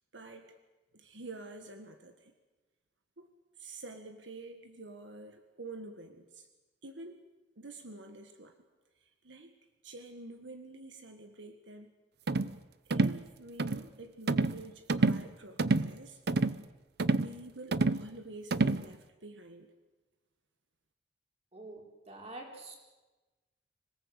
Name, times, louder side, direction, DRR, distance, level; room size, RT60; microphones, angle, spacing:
voice 1, 0.1-0.6 0.9-2.3 3.2-3.3 3.6-6.5 6.8-7.2 7.5-8.6 8.9-9.6 9.8-11.9 12.3-12.5 12.8-16.2 17.0-19.7, right 2 dB, 80° right, 6 dB, 1.7 m, -48 dB
sound 1, 12.3-12.5 12.9-13.2 13.6-13.8 14.3-14.6 14.9-15.3 15.6-15.9 16.3-16.6 17.0-17.3 17.7-18.0 18.5-18.8, right 3 dB, 60° right, 0.8 m, -28 dB
voice 2, 21.5-22.8, right 2 dB, 35° right, 0 dB, 4.8 m, -46 dB
26.0 x 18.0 x 8.2 m, 1.2 s
head